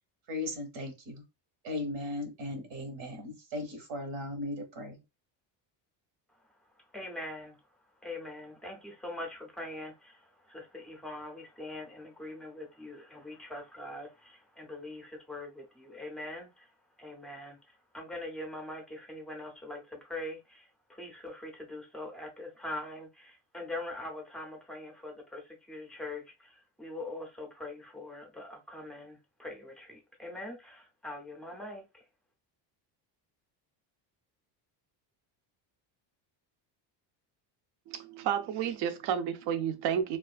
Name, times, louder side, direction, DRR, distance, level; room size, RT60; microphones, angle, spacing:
voice 1, 0.3-1.2 1.6-5.0, left 1 dB, 85° right, 1.2 m, -37 dB
voice 2, 6.9-7.6 8.0-16.7 17.0-32.0, left 1 dB, ahead, 0.5 m, -43 dB
voice 3, 37.9-40.2, right 8 dB, 60° right, 0.5 m, -31 dB
2.5 x 2.4 x 2.3 m
cardioid pair, 145°, 47 cm